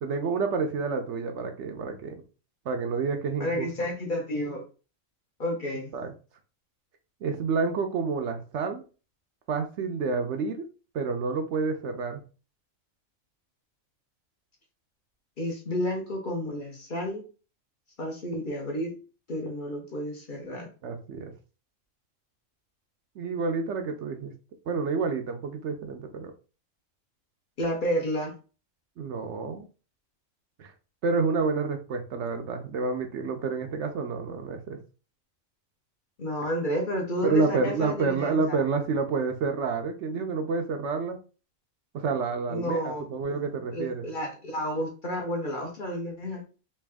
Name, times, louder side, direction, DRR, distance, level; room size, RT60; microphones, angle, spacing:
voice 1, 0.0-2.2 2.7-3.7 5.9-6.1 7.2-8.8 9.5-10.6 10.9-12.2 20.8-21.3 23.2-24.3 24.7-26.3 29.0-29.6 30.6-30.7 31.0-34.8 37.2-41.2 41.9-44.0, right 4 dB, 70° right, 5 dB, 0.8 m, -29 dB
voice 2, 3.4-4.6 5.4-5.9 15.4-17.2 18.0-18.9 19.3-20.7 27.6-28.3 36.2-38.6 42.5-46.4, equal, 45° left, 1 dB, 0.8 m, -31 dB
3.3 x 2.7 x 3.3 m, 0.35 s
omnidirectional pair, 1.4 m